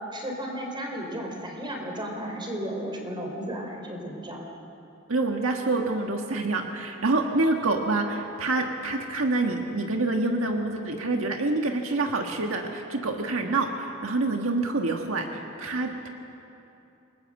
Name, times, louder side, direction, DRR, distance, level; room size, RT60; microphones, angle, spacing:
voice 1, 0.1-4.4, equal, 25° right, 2 dB, 4.3 m, -34 dB
voice 2, 5.1-16.1, right 2 dB, 75° right, 3 dB, 1.6 m, -27 dB
28.0 x 20.5 x 7.8 m, 2.8 s
head